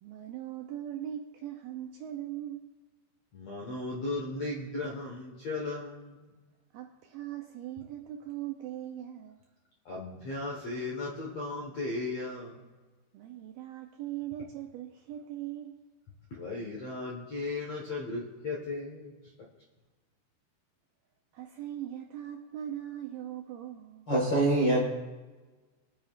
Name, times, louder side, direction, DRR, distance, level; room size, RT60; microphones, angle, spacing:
voice 1, 0.0-2.8 6.7-9.4 13.1-15.7 21.3-24.1, right 11 dB, 90° right, 3 dB, 2.1 m, -40 dB
voice 2, 3.3-6.3 9.8-12.6 16.3-19.1, left 2 dB, 65° left, -3 dB, 1.6 m, -36 dB
voice 3, 24.1-24.8, right 1 dB, 50° left, -4 dB, 1.3 m, -24 dB
23.0 x 9.3 x 2.4 m, 1.3 s
omnidirectional pair, 4.9 m